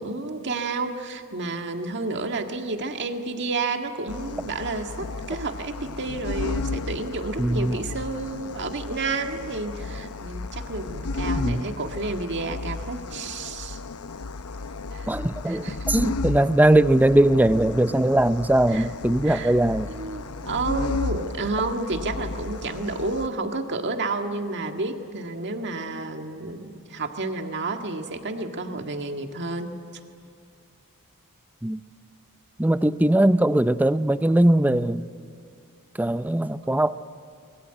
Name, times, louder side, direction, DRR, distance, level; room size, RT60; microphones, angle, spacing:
voice 1, 0.0-13.8 14.9-15.1 15.5-15.9 18.7-18.9 19.2-19.5 19.9-29.8, right 3 dB, 55° right, 4 dB, 1.9 m, -30 dB
sound 1, 4.1-23.3, left 3 dB, 80° left, 0.8 m, -33 dB
voice 2, 7.4-7.8 11.4-11.7 15.1-19.9 31.6-31.8 32.6-35.1 36.0-37.0, right 1 dB, 10° right, 13 dB, 0.5 m, -20 dB
25.0 x 21.5 x 9.1 m, 2.4 s
head